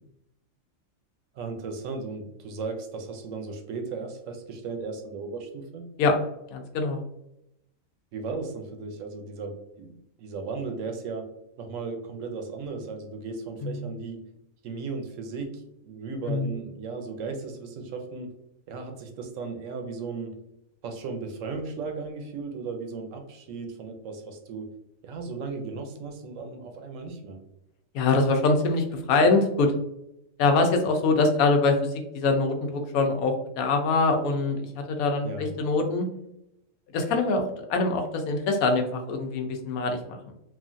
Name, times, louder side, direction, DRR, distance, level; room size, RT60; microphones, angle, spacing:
voice 1, 1.3-5.9 8.1-11.3 11.6-14.2 14.6-18.3 18.7-20.4 20.8-24.7 25.0-27.4 35.2-35.5, right 4 dB, 70° right, 4 dB, 0.9 m, -36 dB
voice 2, 6.5-7.0 13.6-13.9 16.3-16.5 27.9-29.7 30.4-36.1 36.9-40.3, left 3 dB, 90° left, 4 dB, 1.0 m, -24 dB
3.0 x 2.4 x 2.5 m, 0.83 s
omnidirectional pair, 1.4 m